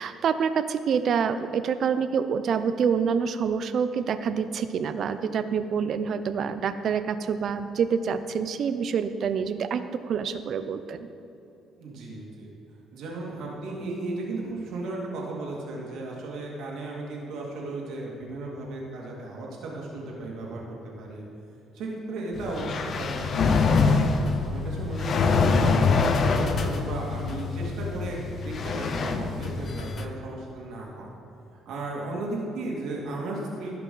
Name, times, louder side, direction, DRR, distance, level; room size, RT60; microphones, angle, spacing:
voice 1, 0.0-11.0, right 6 dB, 55° right, 11 dB, 0.5 m, -27 dB
voice 2, 11.8-12.5 12.9-21.2 21.7-24.0 24.4-31.1 31.7-33.8, right 2 dB, 75° right, -3 dB, 2.2 m, -35 dB
sound 1, 22.3-30.0, left 4 dB, 45° left, 0.6 m, -25 dB
15.5 x 5.8 x 3.9 m, 2.8 s
cardioid pair, 100°, 0 cm